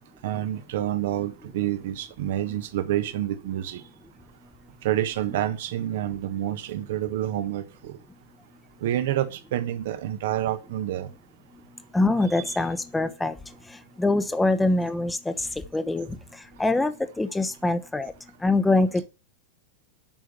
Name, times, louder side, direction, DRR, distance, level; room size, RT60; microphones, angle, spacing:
voice 1, 0.2-3.8 4.8-7.9 8.8-11.1, right 12 dB, 55° right, 1.2 m, -28 dB
voice 2, 11.9-13.4 14.0-16.1 16.6-18.1 18.4-19.1, left 2 dB, 5° left, 1.1 m, -24 dB
9.1 x 6.3 x 8.3 m
figure-of-eight pair, 90°, 0 cm